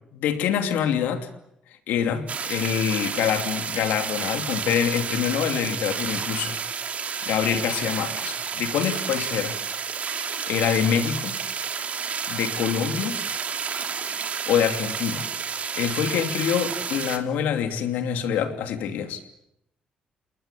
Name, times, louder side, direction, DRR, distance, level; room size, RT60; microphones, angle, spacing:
voice 1, 0.1-1.3 1.9-6.6 7.2-9.6 10.5-11.4 12.3-13.2 14.5-15.3 15.7-19.2, left 8 dB, 85° left, 7 dB, 2.8 m, -25 dB
sound 1, 2.3-17.2, right 6 dB, 55° right, 2.8 m, -30 dB
29.5 x 20.5 x 8.5 m, 0.80 s
cardioid pair, 75°, 3 cm